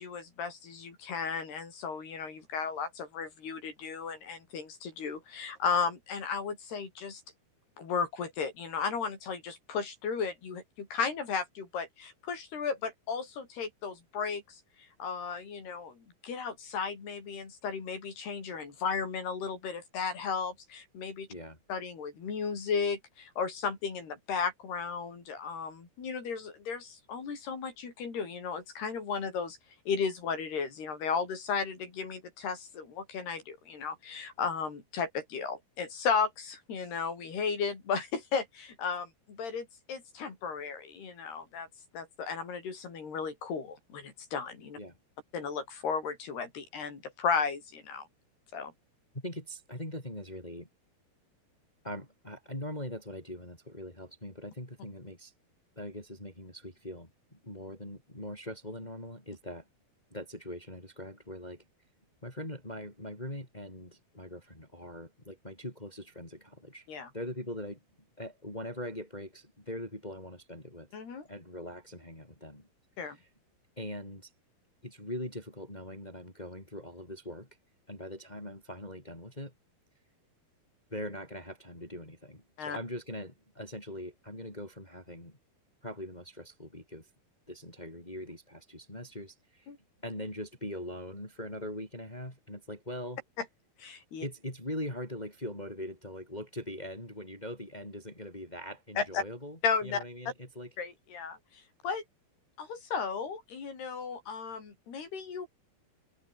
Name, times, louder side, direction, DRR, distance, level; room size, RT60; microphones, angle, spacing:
voice 1, 0.0-7.2 7.8-21.3 21.7-29.6 29.9-41.7 41.9-44.8 45.3-48.1 48.5-48.7 66.9-67.1 70.9-71.3 73.0-73.2 82.6-82.8 89.7-89.8 93.4-93.5 93.8-94.3 99.0-99.2 99.6-100.0 100.8-102.0 102.6-105.5, left 5 dB, 85° left, 7.6 m, -35 dB
voice 2, 49.2-50.7 51.8-55.3 55.8-59.7 60.1-61.6 62.2-66.9 67.1-67.8 68.2-70.9 71.3-72.7 73.1-73.2 73.8-74.3 74.8-77.5 77.9-79.5 80.9-85.4 85.8-87.1 87.5-89.7 90.0-93.2 94.2-100.7, left 1 dB, 10° left, 7.1 m, -41 dB
open air
omnidirectional pair, 4.5 m